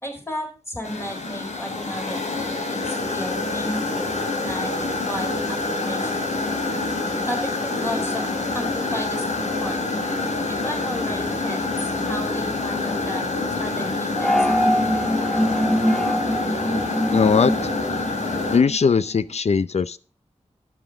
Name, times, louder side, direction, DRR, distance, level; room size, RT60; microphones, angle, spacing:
voice 1, 0.0-4.1 4.4-6.3 7.2-9.8 10.5-14.7, left 1 dB, 20° left, 1 dB, 4.3 m, -34 dB
sound 1, 0.8-18.6, left 2 dB, 80° left, 3.0 m, -26 dB
sound 2, 14.2-18.8, equal, 5° left, 0.8 m, -23 dB
voice 2, 17.1-17.7 18.5-20.0, left 5 dB, 65° left, 16 dB, 0.6 m, -20 dB
12.0 x 7.3 x 5.0 m, 0.35 s
wide cardioid pair, 85°, 12 cm